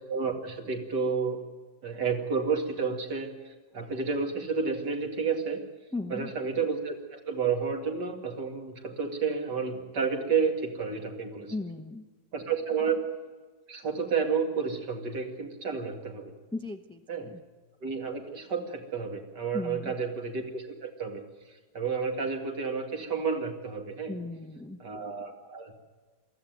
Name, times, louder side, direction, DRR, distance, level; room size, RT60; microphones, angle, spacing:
voice 1, 0.1-1.4 1.8-5.6 6.1-11.5 12.3-13.1 13.7-16.3 17.1-17.3 17.8-21.2 21.5-24.2 24.8-25.7, right 5 dB, 70° right, 3 dB, 2.9 m, -31 dB
voice 2, 5.9-6.3 11.5-12.0 16.5-17.4 19.5-19.9 24.1-24.8, left 2 dB, 10° left, 7 dB, 0.3 m, -37 dB
22.0 x 14.0 x 9.3 m, 1.4 s
omnidirectional pair, 1.9 m